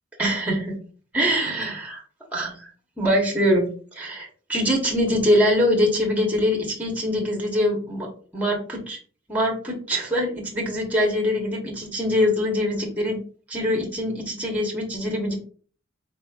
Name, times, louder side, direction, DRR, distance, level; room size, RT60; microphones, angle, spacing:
voice 1, 0.2-0.7 1.1-2.0 2.3-2.7 3.0-3.7 3.9-8.1 8.3-9.0 9.3-13.2 13.5-15.3, equal, 10° right, 0 dB, 1.1 m, -23 dB
4.2 x 4.1 x 2.3 m, 0.41 s
head